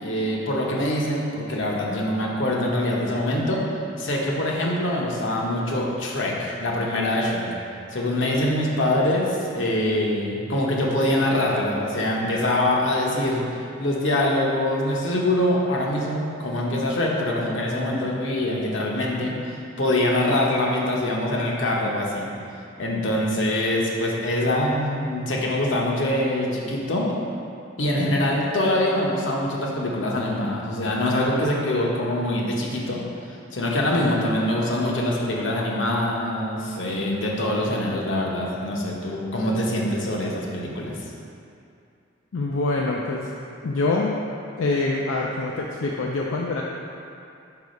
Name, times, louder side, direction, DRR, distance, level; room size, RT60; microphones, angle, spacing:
voice 1, 0.0-3.6 4.0-7.5 7.9-19.3 19.8-22.3 22.8-27.1 27.8-33.0 33.5-40.9, left 1 dB, 75° left, -2 dB, 0.9 m, -24 dB
voice 2, 42.3-43.3 43.6-44.2 44.6-46.6, left 3 dB, 90° left, -1 dB, 0.4 m, -25 dB
4.8 x 4.7 x 5.3 m, 2.5 s
head